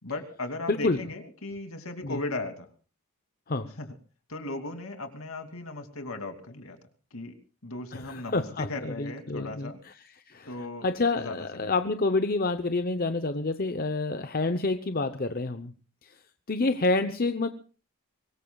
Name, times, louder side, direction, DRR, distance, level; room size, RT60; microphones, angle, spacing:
voice 1, 0.0-2.7 3.8-3.9 4.3-6.8 7.1-7.3 7.6-9.8 10.5-10.9 11.1-11.7, left 2 dB, 65° left, 6 dB, 2.8 m, -37 dB
voice 2, 0.7-1.0 2.0-2.2 3.5-3.7 7.9-9.7 10.3-10.5 10.8-15.7 16.0-16.1 16.5-17.5, left 3 dB, 40° left, 9 dB, 0.8 m, -28 dB
24.5 x 20.0 x 2.4 m, 0.37 s
head